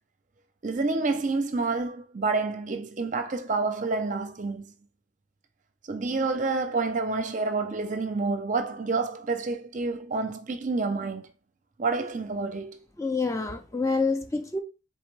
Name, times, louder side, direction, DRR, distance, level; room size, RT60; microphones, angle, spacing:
voice 1, 0.6-4.7 5.8-11.3 11.8-12.8, right 3 dB, 40° right, 0.5 m, -28 dB
voice 2, 13.0-14.6, left 3 dB, 15° left, 0.4 m, -27 dB
4.1 x 3.7 x 3.3 m
head